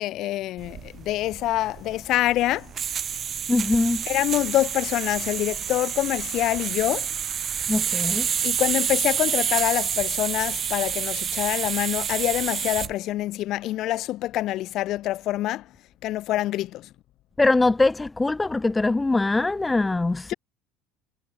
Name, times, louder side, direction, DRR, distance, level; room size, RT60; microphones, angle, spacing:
voice 1, 0.0-2.7 4.0-7.1 8.4-15.7 16.0-16.9 20.3-20.4, left 15 dB, 50° left, 2.4 m, -26 dB
sound 1, 0.6-12.9, right 8 dB, 30° right, 5.4 m, -28 dB
voice 2, 3.5-4.0 7.7-8.3 17.4-20.3, left 2 dB, 10° left, 0.8 m, -22 dB
cardioid pair, 150°, 0 cm